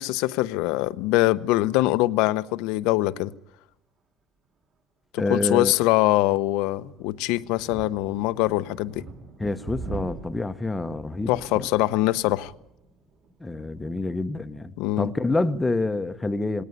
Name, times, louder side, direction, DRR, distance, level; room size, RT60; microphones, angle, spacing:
voice 1, 0.0-3.3 5.1-9.0 11.3-12.5 14.8-15.1, left 17 dB, 85° left, 0.8 m, -23 dB
voice 2, 5.2-5.7 9.4-11.7 13.4-16.6, left 2 dB, 10° left, 0.9 m, -27 dB
sound 1, 6.5-14.0, right 4 dB, 45° right, 3.7 m, -43 dB
19.5 x 18.0 x 9.7 m
cardioid pair, 150°, 0 cm